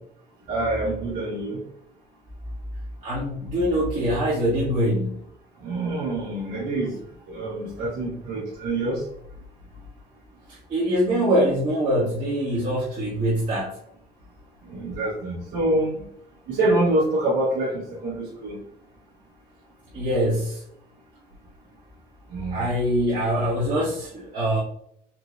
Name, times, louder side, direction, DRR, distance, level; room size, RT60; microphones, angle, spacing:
voice 1, 0.5-1.6 5.6-6.9 7.3-9.0 14.7-15.9 16.5-18.6 22.3-22.6, right 2 dB, 75° right, -7 dB, 1.6 m, -26 dB
voice 2, 3.0-5.2 10.7-13.8 19.9-20.6 22.5-24.6, equal, 50° right, -7 dB, 1.3 m, -23 dB
4.3 x 2.9 x 3.2 m, 0.70 s
cardioid pair, 110°, 17 cm